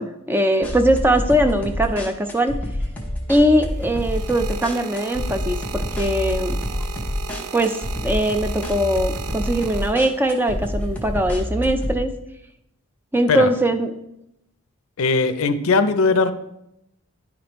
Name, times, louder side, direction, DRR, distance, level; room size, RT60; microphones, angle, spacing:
voice 1, 0.0-2.5 3.3-6.6 7.5-12.1 13.1-13.9, right 1 dB, 10° right, 7 dB, 0.4 m, -21 dB
sound 1, 0.6-12.0, left 1 dB, 5° left, 0.8 m, -28 dB
sound 2, 3.5-10.4 11.2-11.5, right 8 dB, 85° right, 0.4 m, -36 dB
voice 2, 15.0-16.3, left 4 dB, 70° left, 10 dB, 0.5 m, -19 dB
10.0 x 5.0 x 3.0 m, 0.82 s
head